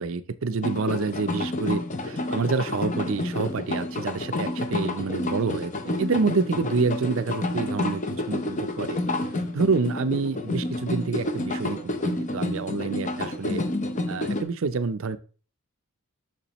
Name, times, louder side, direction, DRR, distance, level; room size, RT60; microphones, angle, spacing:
voice 1, 0.0-5.7 6.0-9.0 9.5-13.6 14.1-15.2, right 4 dB, 60° right, 13 dB, 0.5 m, -27 dB
sound 1, 0.6-14.4, left 2 dB, 35° left, 0.7 m, -29 dB
6.9 x 5.9 x 3.0 m, 0.38 s
head